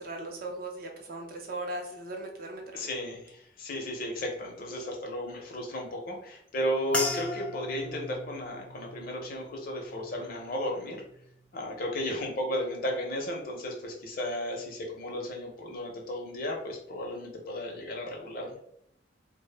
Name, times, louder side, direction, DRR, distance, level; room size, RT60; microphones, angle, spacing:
voice 1, 0.0-2.9, right 2 dB, 50° right, 1 dB, 0.5 m, -38 dB
voice 2, 2.7-11.0 11.5-18.5, left 1 dB, 50° left, 1 dB, 0.6 m, -34 dB
sound 1, 6.9-11.5 11.8-12.4 13.0-13.3, left 1 dB, 5° left, 0.3 m, -39 dB
2.1 x 2.0 x 3.2 m, 0.71 s
head